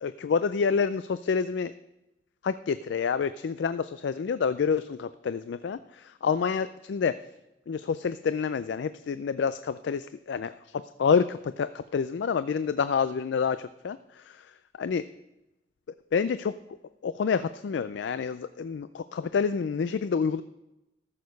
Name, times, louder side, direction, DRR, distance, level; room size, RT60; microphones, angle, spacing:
voice 1, 0.0-1.7 2.4-7.1 7.7-10.5 11.0-14.4 14.8-15.0 16.1-16.5 17.0-20.4, left 6 dB, 80° left, 13 dB, 0.4 m, -28 dB
14.0 x 6.5 x 5.2 m, 0.96 s
head